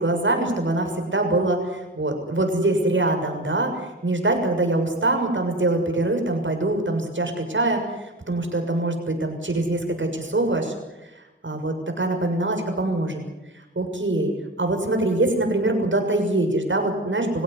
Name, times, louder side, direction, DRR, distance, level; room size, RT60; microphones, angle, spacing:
voice 1, 0.0-10.7 11.4-13.2 13.7-14.3 14.6-17.4, right 2 dB, 75° right, 4 dB, 6.7 m, -23 dB
26.5 x 16.5 x 9.8 m, 1.0 s
wide cardioid pair, 60°, 20 cm